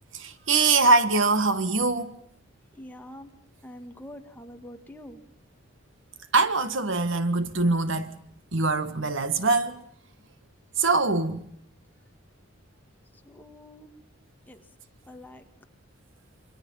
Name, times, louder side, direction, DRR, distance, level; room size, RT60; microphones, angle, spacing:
voice 1, 0.2-2.2 6.3-8.2 8.5-9.8 10.8-11.5, right 3 dB, 65° right, 1.5 m, -23 dB
voice 2, 2.7-3.3 3.6-5.2 13.1-13.9 14.5-14.6 15.1-15.5, left 1 dB, 10° left, 1.8 m, -45 dB
28.5 x 23.5 x 5.6 m
head